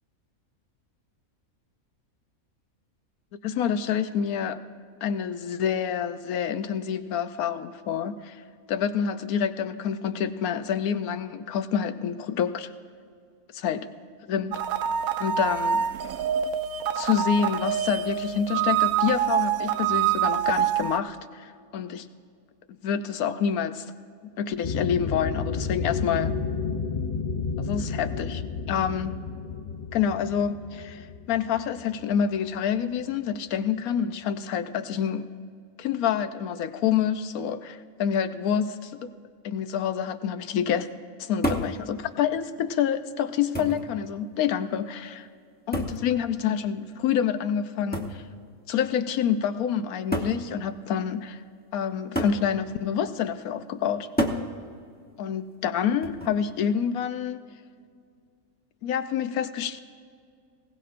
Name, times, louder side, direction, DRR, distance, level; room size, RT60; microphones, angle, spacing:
voice 1, 3.4-4.6 5.0-8.4 8.7-12.7 13.5-13.9 14.3-14.6 15.2-15.8 16.9-22.1 22.8-23.9 24.2-26.3 27.6-28.4 28.7-29.2 29.9-35.3 35.8-39.1 39.4-40.9 41.2-45.3 45.7-48.2 48.7-51.4 51.7-54.1 55.2-57.4 58.8-59.8, left 8 dB, 85° left, 10 dB, 1.2 m, -27 dB
sound 1, 14.5-21.0, right 9 dB, 85° right, 1.1 m, -26 dB
sound 2, 24.6-32.5, left 5 dB, 55° left, 0.3 m, -31 dB
sound 3, 41.4-41.8 42.8-42.9 43.5-43.9 45.7-46.1 47.9-48.2 49.3-49.4 50.1-50.4 52.2-52.4 54.2-54.5 56.0-56.4, equal, 10° left, 0.7 m, -28 dB
20.0 x 17.0 x 2.5 m, 2.2 s
omnidirectional pair, 1.5 m